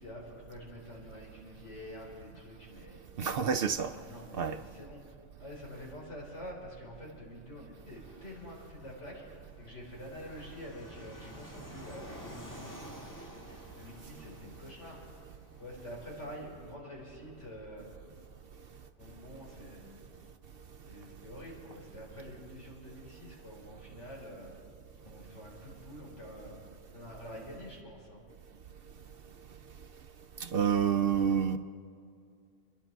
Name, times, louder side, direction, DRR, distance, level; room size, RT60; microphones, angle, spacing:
voice 1, 0.0-3.0 3.9-5.1 5.4-15.0 15.6-17.9 19.0-19.8 20.9-24.6 25.0-26.6 26.9-28.2, left 1 dB, 75° left, 4.4 m, -47 dB
voice 2, 3.2-3.9 4.4-4.6 30.4-31.6, right 7 dB, 60° right, 0.7 m, -28 dB
Fixed-wing aircraft airplane, 7.9-26.3, right 1 dB, 15° left, 1.9 m, -54 dB
28.0 x 11.0 x 4.5 m
omnidirectional pair, 1.2 m